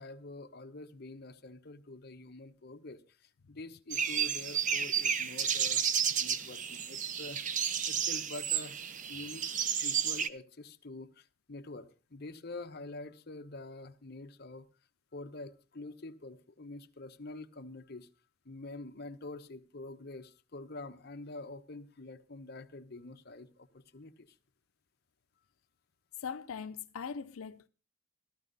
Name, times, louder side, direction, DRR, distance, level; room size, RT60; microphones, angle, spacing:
voice 1, 0.0-7.4 7.9-8.8 9.1-9.5 9.8-14.7 15.1-18.1 18.4-24.4, left 2 dB, 50° left, 1.0 m, -46 dB
sound 1, 3.9-10.3, right 8 dB, 40° right, 0.7 m, -32 dB
voice 2, 26.2-27.7, left 6 dB, 90° left, 0.6 m, -40 dB
14.5 x 14.0 x 4.0 m
head